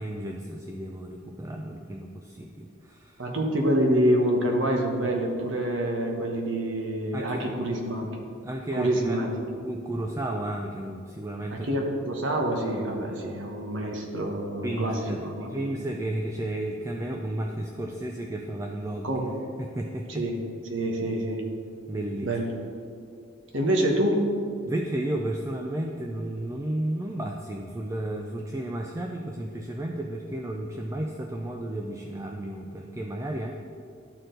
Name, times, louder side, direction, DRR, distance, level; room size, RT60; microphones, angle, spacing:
voice 1, 0.0-3.3 7.1-7.6 8.4-9.3 9.6-11.7 14.6-19.2 19.6-20.2 21.9-22.4 24.7-33.5, right 1 dB, 15° right, 2 dB, 0.4 m, -33 dB
voice 2, 3.2-8.1 8.7-9.4 11.5-15.5 19.0-19.3 20.1-20.4 20.7-21.5 22.2-22.5 23.5-24.3, right 1 dB, 70° right, 1 dB, 1.2 m, -26 dB
12.0 x 4.4 x 3.9 m, 2.4 s
head